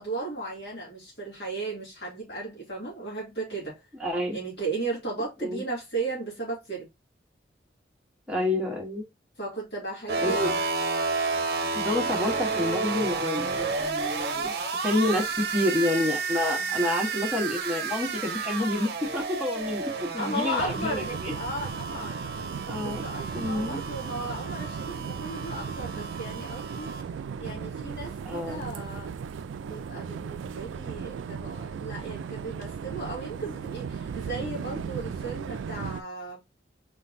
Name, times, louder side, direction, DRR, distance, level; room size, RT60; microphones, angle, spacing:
voice 1, 0.0-3.8 4.3-6.9 9.4-10.6 16.5-16.9 20.2-22.2 22.8-26.9 27.4-29.1 29.6-36.4, right 2 dB, 60° left, 2.5 m, -35 dB
voice 2, 4.0-4.4 5.4-5.6 8.3-9.0 10.2-10.5 11.7-15.2 15.5-21.3 22.7-23.0 23.3-23.8 28.2-28.6, left 1 dB, 5° right, 1.2 m, -29 dB
sound 1, 10.1-27.0, right 4 dB, 55° right, 0.8 m, -31 dB
sound 2, 20.6-36.0, right 6 dB, 90° right, 0.3 m, -36 dB
4.4 x 3.7 x 2.6 m
head